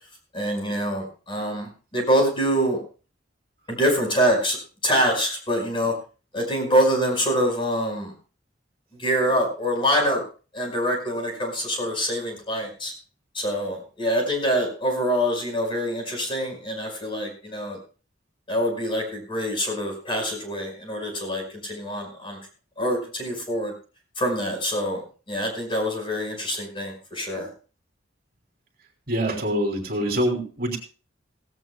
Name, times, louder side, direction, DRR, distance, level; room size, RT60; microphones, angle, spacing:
voice 1, 0.3-2.8 3.7-4.6 4.8-5.9 6.3-8.1 9.0-10.2 10.5-12.9 13.4-17.8 18.5-22.4 22.8-23.7 24.2-25.0 25.3-27.5, equal, 25° left, 3 dB, 5.1 m, -25 dB
voice 2, 29.1-30.8, equal, 50° right, 1 dB, 3.2 m, -25 dB
17.0 x 17.0 x 2.3 m, 0.36 s
head